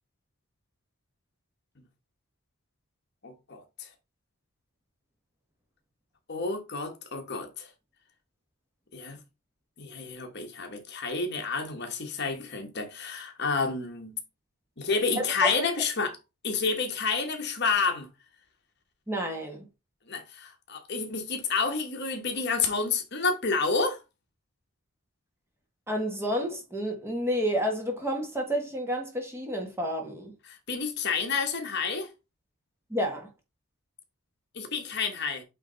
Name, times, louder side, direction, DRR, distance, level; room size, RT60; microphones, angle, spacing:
voice 1, 3.2-3.9 6.3-7.7 8.9-9.2 9.8-14.2 14.8-16.1 16.4-18.1 20.1-24.0 30.5-32.1 34.5-35.4, left 4 dB, 50° left, 1.3 m, -29 dB
voice 2, 15.2-15.7 19.1-19.7 25.9-30.3 32.9-33.3, equal, 10° right, 1.4 m, -30 dB
8.5 x 3.2 x 3.9 m
head